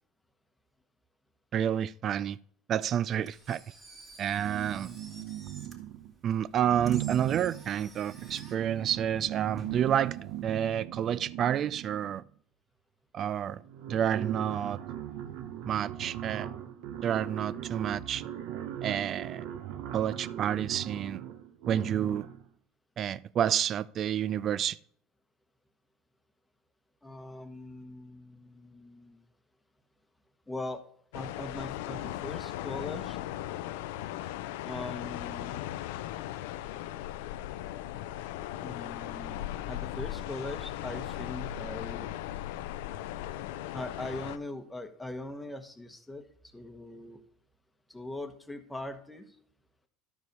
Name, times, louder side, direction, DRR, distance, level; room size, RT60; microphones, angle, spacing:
voice 1, 1.5-2.4 2.7-3.6 4.2-4.9 6.2-10.2 10.4-12.2 13.1-13.6 13.9-14.8 15.7-16.5 17.0-18.2 18.8-19.4 19.9-21.2 21.7-22.3 23.0-24.8, right 9 dB, 40° right, 0.4 m, -29 dB
Engine, 3.1-10.4, right 2 dB, 25° right, 2.4 m, -53 dB
sound 1, 4.3-6.1 6.6-12.3 13.2-13.3 13.6-22.5, right 12 dB, 65° right, 0.9 m, -39 dB
voice 2, 27.0-29.2 30.5-30.8 31.1-33.2 34.6-35.7 38.6-42.1 43.7-47.2 47.9-49.4, left 2 dB, 10° left, 1.1 m, -41 dB
sound 2, 31.1-44.4, left 13 dB, 80° left, 0.5 m, -38 dB
12.5 x 4.8 x 5.3 m
supercardioid pair, 110°, 0 cm